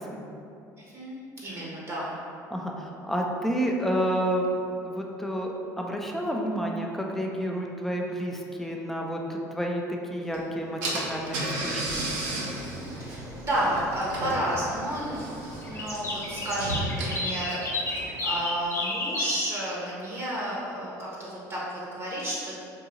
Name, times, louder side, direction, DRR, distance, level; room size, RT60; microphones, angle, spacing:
voice 1, 1.4-2.1 13.0-15.2 15.6-17.8 18.2-22.6, right 1 dB, 35° right, -6 dB, 0.9 m, -31 dB
voice 2, 2.5-9.8 10.1-12.1, equal, 5° left, 0 dB, 0.5 m, -30 dB
Car / Engine, 10.3-10.4 10.8-18.2, right 2 dB, 80° right, 0.7 m, -34 dB
sound 1, 12.1-13.2 13.6-13.9 14.1-15.0 15.4-19.3, left 2 dB, 35° left, 1.1 m, -32 dB
3.7 x 2.6 x 2.9 m, 2.6 s
supercardioid pair, 75°, 8 cm